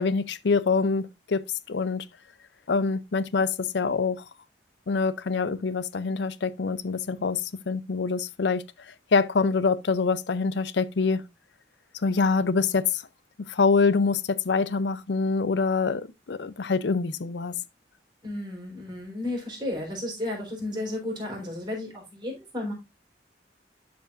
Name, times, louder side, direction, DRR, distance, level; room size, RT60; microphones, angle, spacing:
voice 1, 0.0-2.1 2.7-4.2 4.9-8.6 9.1-11.2 12.0-13.0 13.5-17.5, left 4 dB, 75° left, 0.5 m, -25 dB
voice 2, 18.2-22.7, left 1 dB, 25° right, 3.9 m, -33 dB
12.0 x 5.1 x 2.5 m
head